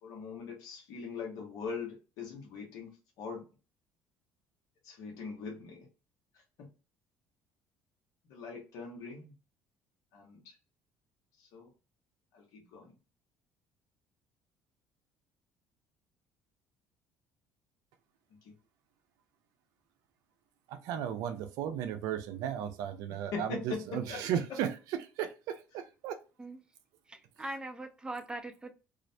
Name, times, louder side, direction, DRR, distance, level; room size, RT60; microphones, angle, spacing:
voice 1, 0.0-2.9 3.2-3.4 4.8-5.9 6.6-6.7 8.2-9.3 10.1-10.6 11.4-11.7 12.3-12.9 18.4-18.5 23.1-24.2, left 5 dB, 75° left, 0 dB, 0.9 m, -42 dB
voice 2, 20.7-24.7 25.2-26.2, right 9 dB, 75° right, 9 dB, 0.5 m, -35 dB
voice 3, 27.1-28.7, right 2 dB, 15° right, 6 dB, 0.5 m, -41 dB
2.4 x 2.1 x 2.6 m, 0.32 s
supercardioid pair, 85°, 6 cm